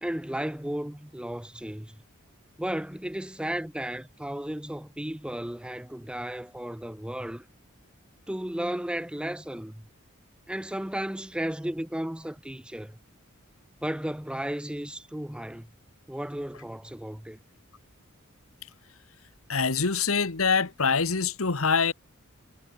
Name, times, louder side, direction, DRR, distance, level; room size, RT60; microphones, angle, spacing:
voice 1, 0.0-2.0 2.6-7.4 8.3-9.8 10.5-13.0 13.8-15.7 16.1-17.4, right 1 dB, 5° right, 0.7 m, -34 dB
voice 2, 19.5-21.9, left 5 dB, 75° left, 1.5 m, -24 dB
head